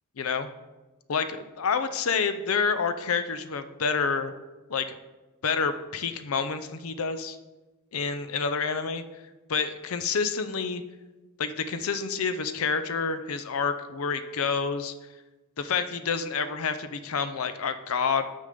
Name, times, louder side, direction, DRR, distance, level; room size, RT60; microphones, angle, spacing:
voice 1, 0.2-0.5 1.1-4.3 4.7-5.0 5.4-7.4 7.9-9.0 9.5-10.8 11.4-14.9 15.6-18.2, left 5 dB, 80° left, 10 dB, 0.6 m, -28 dB
6.5 x 5.4 x 6.6 m, 1.1 s
head